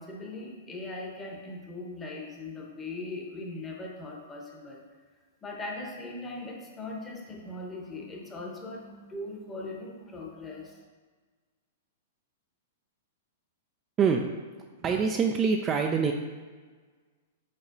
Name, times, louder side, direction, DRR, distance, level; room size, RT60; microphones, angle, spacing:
voice 1, 0.0-4.8 5.4-10.8, left 2 dB, 20° left, -1 dB, 0.9 m, -40 dB
voice 2, 14.8-16.1, right 6 dB, 25° right, 3 dB, 0.3 m, -25 dB
4.9 x 4.2 x 2.6 m, 1.4 s
hypercardioid pair, 120°, 0 cm